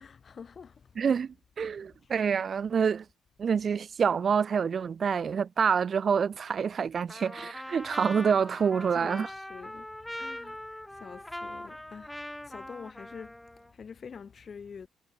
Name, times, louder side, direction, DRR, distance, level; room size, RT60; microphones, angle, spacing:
voice 1, 0.0-1.2 2.0-2.1 8.9-14.9, left 6 dB, 45° left, 3.6 m, -47 dB
voice 2, 1.0-3.0 3.4-9.3, right 6 dB, 45° right, 0.3 m, -27 dB
Trumpet, 7.1-13.7, left 1 dB, 5° left, 6.1 m, -41 dB
cardioid pair, 90°, 0 cm